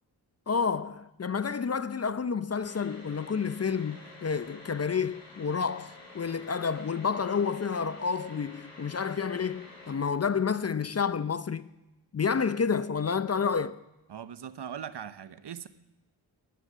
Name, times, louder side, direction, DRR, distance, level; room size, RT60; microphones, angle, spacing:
voice 1, 0.5-11.7 12.1-13.8, left 6 dB, 30° left, 0.6 m, -29 dB
sound 1, 2.6-9.9, left 2 dB, 65° left, 6.7 m, -50 dB
voice 2, 14.1-15.7, right 8 dB, 55° right, 0.9 m, -40 dB
20.0 x 8.0 x 7.4 m
supercardioid pair, 45°, 48 cm